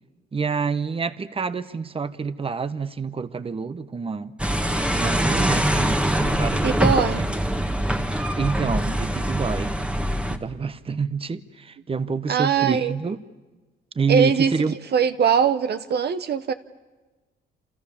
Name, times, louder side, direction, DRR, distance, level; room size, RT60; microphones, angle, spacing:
voice 1, 0.3-4.3 4.9-6.7 7.1-7.3 8.4-9.7 10.3-13.2 13.9-14.8, right 5 dB, 30° right, 13 dB, 1.1 m, -27 dB
sound 1, 4.4-10.4, right 1 dB, 5° right, 1.5 m, -23 dB
voice 2, 6.6-7.2 12.3-12.9 14.1-14.5 14.9-16.5, right 7 dB, 55° right, 10 dB, 1.0 m, -21 dB
28.5 x 27.5 x 7.2 m, 1.2 s
cardioid pair, 90°, 20 cm